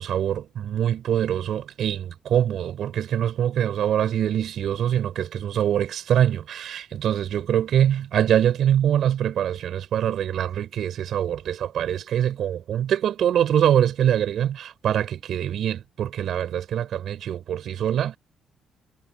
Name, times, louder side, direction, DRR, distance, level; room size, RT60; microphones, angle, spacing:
voice 1, 0.0-18.2, right 10 dB, 70° right, 6.6 m, -24 dB
cardioid pair, 90°, 0 cm